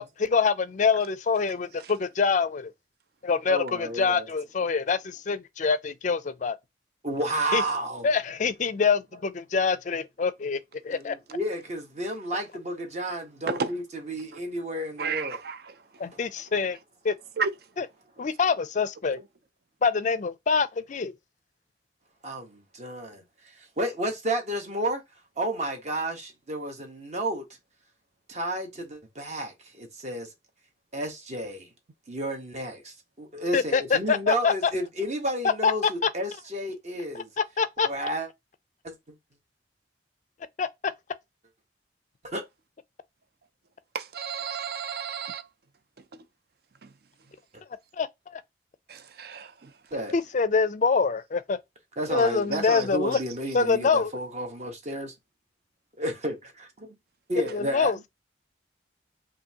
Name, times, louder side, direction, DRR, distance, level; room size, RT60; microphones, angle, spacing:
voice 1, 0.0-2.7 3.2-6.6 7.5-7.6 8.0-10.6 10.8-11.2 16.0-16.8 17.0-17.2 17.8-17.9 18.2-19.2 19.8-21.1 33.5-34.7 35.6-36.1 37.1-37.9 40.6-40.9 47.9-48.4 50.1-51.6 52.1-53.2 53.5-54.1 57.5-58.1, left 5 dB, 40° left, 0.4 m, -25 dB
voice 2, 3.5-4.3 7.0-8.1 10.9-15.4 22.2-25.0 25.4-27.4 28.3-30.3 30.9-31.7 32.1-37.3 37.8-38.3 38.8-38.9 42.2-42.4 49.9-50.1 52.0-55.1 56.0-56.9 57.3-58.0, right 1 dB, 40° right, 1.1 m, -32 dB
voice 3, 15.0-15.6 17.4-17.5 43.9-45.4 48.9-49.5 52.7-52.8, right 5 dB, 55° right, 0.5 m, -31 dB
5.2 x 2.6 x 2.9 m
head